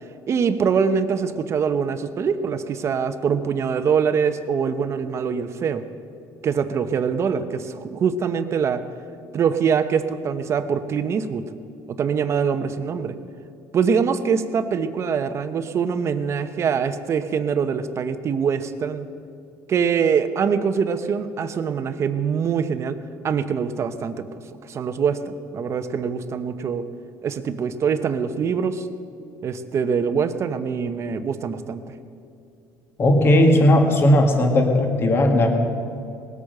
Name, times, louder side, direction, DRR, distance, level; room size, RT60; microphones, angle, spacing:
voice 1, 0.3-5.8 6.4-8.8 9.3-11.4 12.0-13.1 13.7-19.1 19.7-23.0 23.2-24.2 24.6-26.8 27.2-28.9 29.4-31.9, right 6 dB, 40° right, 10 dB, 0.9 m, -23 dB
voice 2, 33.0-35.5, left 1 dB, 35° left, 4 dB, 1.8 m, -16 dB
19.0 x 8.6 x 6.6 m, 2.5 s
cardioid pair, 125°, 7 cm